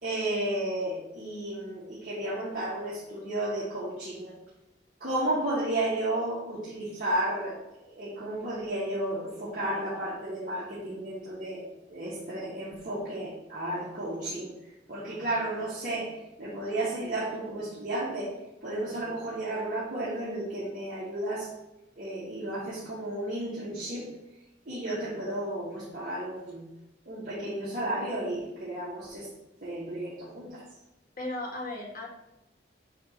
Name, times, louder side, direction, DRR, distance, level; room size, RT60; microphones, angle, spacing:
voice 1, 0.0-4.3 5.0-11.6 11.9-14.5 14.9-18.3 18.6-21.5 22.0-24.1 24.7-26.6 27.1-29.3 29.6-30.6, right 1 dB, 50° right, -10 dB, 2.2 m, -33 dB
voice 2, 31.2-32.1, left 2 dB, 50° left, -1 dB, 1.7 m, -35 dB
8.3 x 3.0 x 6.0 m, 0.95 s
head